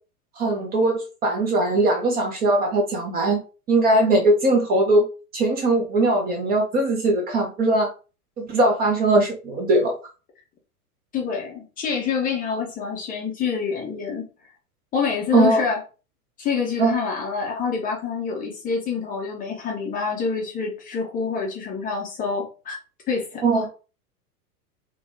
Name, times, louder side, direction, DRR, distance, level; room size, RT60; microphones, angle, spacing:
voice 1, 0.4-3.4 3.7-5.0 5.3-7.9 8.4-9.9 15.3-15.6 16.8-16.9 23.4-23.7, right 2 dB, 20° right, 2 dB, 0.7 m, -20 dB
voice 2, 11.1-14.2 14.9-15.8 16.4-22.8 23.1-23.4, left 5 dB, 20° left, -1 dB, 0.7 m, -27 dB
3.6 x 2.2 x 3.2 m, 0.34 s
figure-of-eight pair, 100°, 46 cm